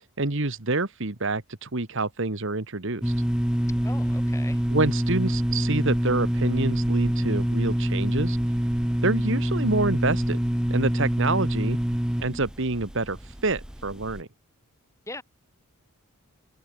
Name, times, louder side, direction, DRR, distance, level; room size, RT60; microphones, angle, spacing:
voice 1, 0.2-3.0 4.7-8.4 9.0-10.4 10.7-11.8 12.2-13.2 13.4-14.3, right 3 dB, 60° right, 1.6 m, -27 dB
sound 1, 3.0-14.2, equal, 5° right, 0.4 m, -26 dB
voice 2, 3.8-4.6 15.1-15.2, left 2 dB, 15° left, 5.6 m, -40 dB
head